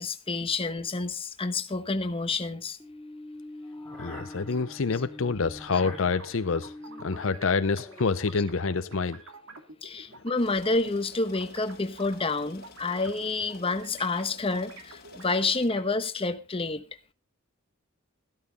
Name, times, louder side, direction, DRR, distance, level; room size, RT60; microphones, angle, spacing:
voice 1, 0.0-2.8 4.9-5.0 5.7-5.8 8.4-8.5 9.8-16.8, left 3 dB, 25° left, 1.1 m, -29 dB
sound 1, 2.8-9.2, left 1 dB, 5° left, 2.9 m, -44 dB
voice 2, 4.0-6.7 7.0-9.2, left 4 dB, 65° left, 0.6 m, -27 dB
sound 2, 6.1-10.3 10.8-15.8, right 3 dB, 65° right, 2.6 m, -48 dB
sound 3, 10.4-15.7, left 4 dB, 50° left, 1.8 m, -52 dB
13.5 x 12.5 x 4.0 m
head